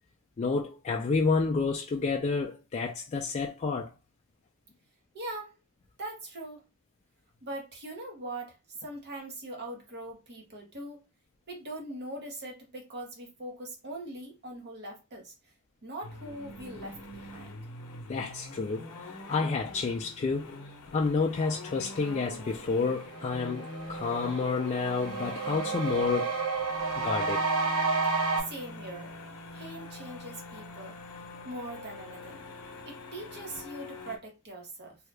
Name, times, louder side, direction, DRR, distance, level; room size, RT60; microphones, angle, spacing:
voice 1, 0.4-3.9 18.1-18.9 19.3-20.6 20.9-26.3 27.0-27.4, left 4 dB, 30° left, 0.3 m, -29 dB
voice 2, 5.1-5.6 6.0-6.7 7.4-11.0 11.5-15.3 15.8-17.5 28.4-29.2 29.5-31.0 31.4-32.4 32.9-35.0, right 1 dB, 50° right, 0.9 m, -41 dB
sound 1, 16.0-34.2, left 2 dB, 85° left, 0.6 m, -44 dB
sound 2, 22.6-22.7 23.1-28.4, right 4 dB, 80° right, 0.6 m, -31 dB
2.7 x 2.2 x 3.2 m
head